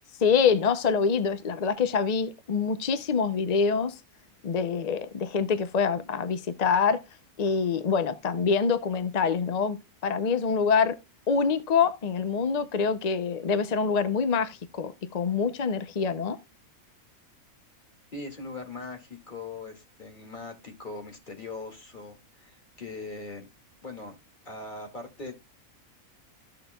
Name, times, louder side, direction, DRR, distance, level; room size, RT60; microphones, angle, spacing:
voice 1, 0.2-4.0 4.4-7.0 7.4-11.0 11.3-16.4, left 5 dB, 55° left, 0.4 m, -25 dB
voice 2, 18.1-23.5 23.8-24.2 24.5-25.3, left 3 dB, 35° left, 2.3 m, -40 dB
14.0 x 6.6 x 2.2 m
omnidirectional pair, 1.5 m